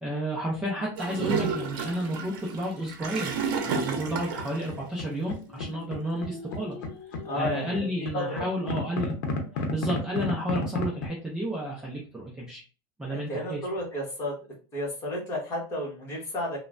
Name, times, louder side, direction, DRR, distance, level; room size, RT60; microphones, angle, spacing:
voice 1, 0.0-3.3 3.6-6.8 7.3-9.1 9.7-12.6 13.0-13.6, equal, 5° right, -4 dB, 0.4 m, -31 dB
Gurgling / Toilet flush, 1.0-4.7, right 5 dB, 65° right, 0.7 m, -31 dB
sound 1, 3.9-5.0 5.3-11.0, left 4 dB, 70° left, 0.7 m, -34 dB
voice 2, 7.2-8.5 13.1-14.3 14.7-16.6, left 1 dB, 20° left, -3 dB, 1.1 m, -32 dB
3.0 x 2.1 x 2.4 m, 0.35 s
supercardioid pair, 170°, 12 cm